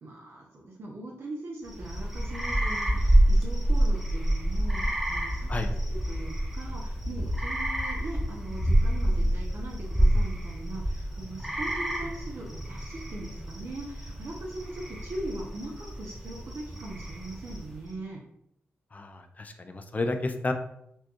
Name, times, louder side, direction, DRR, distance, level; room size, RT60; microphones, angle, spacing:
voice 1, 0.0-18.2, right 2 dB, 65° right, -3 dB, 0.7 m, -41 dB
sound 1, 1.6-17.9, right 1 dB, 5° right, 0.9 m, -28 dB
voice 2, 18.9-20.5, left 2 dB, 35° left, 7 dB, 0.5 m, -31 dB
4.3 x 2.3 x 3.0 m, 0.76 s
cardioid pair, 80°, 5 cm